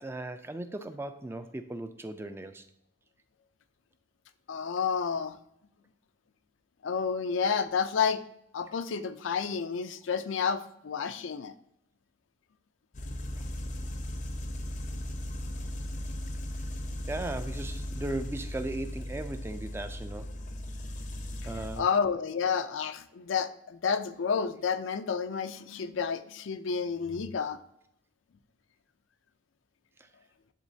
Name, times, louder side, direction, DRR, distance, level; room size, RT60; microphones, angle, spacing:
voice 1, 0.0-2.7 17.1-20.3 21.5-21.9, right 2 dB, 15° right, 9 dB, 0.3 m, -37 dB
voice 2, 4.5-5.4 6.8-8.2 8.5-11.5 21.8-27.6, left 6 dB, 85° left, 10 dB, 0.5 m, -30 dB
sound 1, 12.9-21.8, left 1 dB, 40° left, 0.6 m, -37 dB
10.0 x 3.7 x 2.7 m, 0.75 s
head